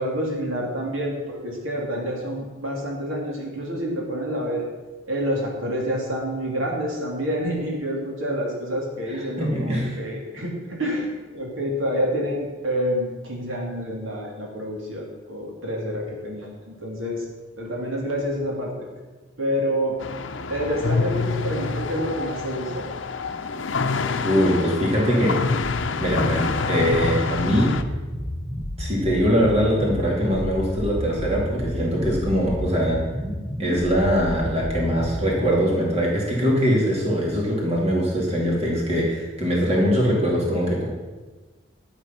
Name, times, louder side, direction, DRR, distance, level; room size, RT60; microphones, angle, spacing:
voice 1, 0.0-4.7 5.1-17.3 17.6-18.9 19.4-20.0 20.5-22.9, equal, 85° right, -1 dB, 2.7 m, -28 dB
voice 2, 9.4-9.9 24.2-25.5 26.0-27.8 28.8-33.0 33.6-40.9, equal, 30° right, -3 dB, 2.6 m, -22 dB
sound 1, 20.0-27.8, left 4 dB, 70° left, 0.7 m, -27 dB
sound 2, 25.5-35.4, equal, 20° left, 1.3 m, -31 dB
12.0 x 8.1 x 5.8 m, 1.2 s
head